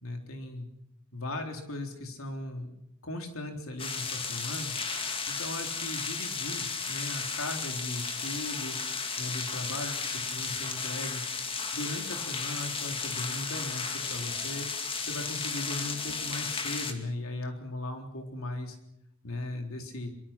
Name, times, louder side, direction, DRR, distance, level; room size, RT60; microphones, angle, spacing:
voice 1, 0.0-0.7 1.1-2.7 3.0-4.7 5.3-8.8 9.2-11.3 11.7-14.7 15.0-18.8 19.2-20.1, left 2 dB, 65° left, 4 dB, 3.9 m, -38 dB
sound 1, 3.8-16.9, left 5 dB, 25° left, 2.2 m, -34 dB
23.5 x 23.0 x 6.1 m, 0.82 s
head